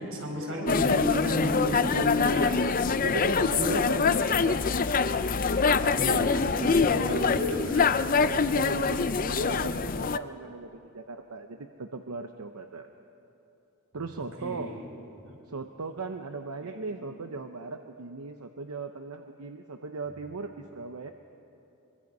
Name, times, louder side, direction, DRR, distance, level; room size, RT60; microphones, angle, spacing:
voice 1, 0.0-1.9 2.2-2.5 3.6-3.8 6.0-7.9 14.2-14.8 16.6-16.9, left 1 dB, 65° right, 0 dB, 4.9 m, -32 dB
sound 1, 0.7-10.2, left 5 dB, 40° left, 0.5 m, -25 dB
voice 2, 1.9-2.5 3.0-4.7 7.0-7.4 8.2-12.9 13.9-14.7 15.5-21.1, right 4 dB, 90° right, 6 dB, 0.8 m, -38 dB
24.0 x 23.0 x 5.5 m, 2.9 s
head